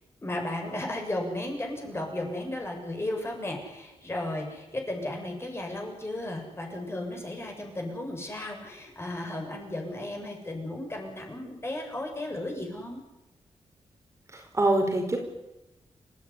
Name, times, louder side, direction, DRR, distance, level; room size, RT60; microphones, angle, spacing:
voice 1, 0.2-13.0, left 1 dB, 20° left, 2 dB, 6.8 m, -34 dB
voice 2, 14.3-15.2, right 2 dB, 25° right, 3 dB, 4.8 m, -25 dB
29.0 x 15.0 x 10.0 m, 0.95 s
wide cardioid pair, 145°, 11 cm